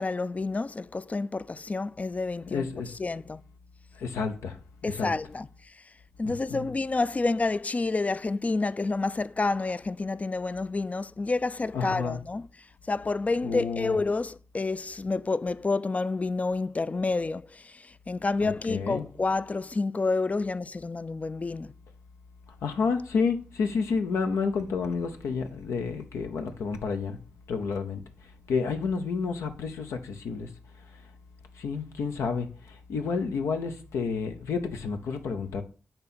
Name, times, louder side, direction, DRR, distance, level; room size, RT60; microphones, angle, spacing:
voice 1, 0.0-2.7 3.0-3.4 4.8-5.5 6.2-12.5 12.9-21.7, left 3 dB, 30° left, 0.3 m, -29 dB
voice 2, 2.5-3.0 3.9-4.6 4.8-5.1 6.2-6.7 11.7-12.2 13.4-14.0 18.4-19.0 22.6-27.2 27.5-30.5 30.8-31.1 31.5-35.6, left 5 dB, 85° left, 0.7 m, -30 dB
8.7 x 2.9 x 4.2 m
supercardioid pair, 40°, 5 cm